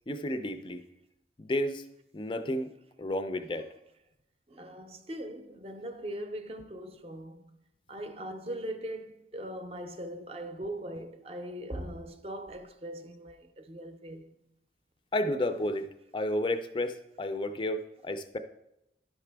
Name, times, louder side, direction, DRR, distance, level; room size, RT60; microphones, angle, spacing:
voice 1, 0.1-0.8 1.4-1.8 2.1-2.7 3.0-3.7 15.1-15.9 16.1-18.4, left 1 dB, 25° left, 0.4 m, -31 dB
voice 2, 4.5-7.6 7.9-14.3, right 1 dB, 30° right, 0.6 m, -40 dB
11.0 x 5.8 x 3.4 m
head